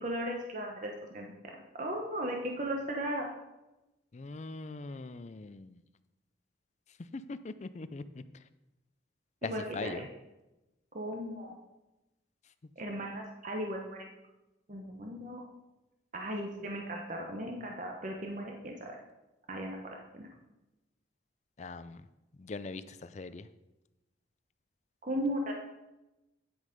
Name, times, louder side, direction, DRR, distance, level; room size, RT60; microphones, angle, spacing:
voice 1, 0.0-1.3 1.7-3.3 9.4-9.9 10.9-11.5 12.8-14.1 14.7-15.4 16.1-18.9 19.5-20.3 25.0-25.5, equal, 40° right, 1 dB, 1.0 m, -36 dB
voice 2, 4.1-5.8 7.0-8.2 9.4-10.1 21.6-22.1 22.4-23.5, left 3 dB, 35° left, 13 dB, 0.4 m, -41 dB
9.7 x 6.3 x 5.2 m, 0.99 s
head